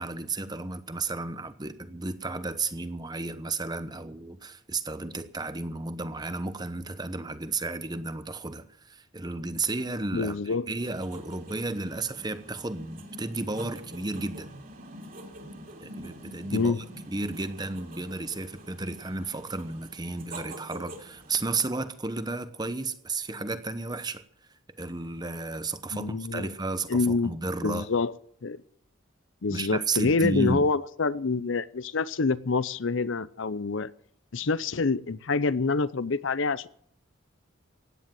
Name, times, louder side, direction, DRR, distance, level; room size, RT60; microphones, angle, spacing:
voice 1, 0.0-14.5 15.8-16.7 17.1-24.2 24.8-27.9 29.5-30.7, right 3 dB, 20° right, 1.0 m, -33 dB
voice 2, 10.1-10.7 16.5-16.8 25.9-26.5 26.9-27.4 27.6-28.1 28.4-28.6 29.4-33.9 34.3-36.7, left 4 dB, 70° left, 0.7 m, -26 dB
sound 1, 10.8-21.7, right 1 dB, 45° right, 3.1 m, -46 dB
16.5 x 10.0 x 7.6 m
head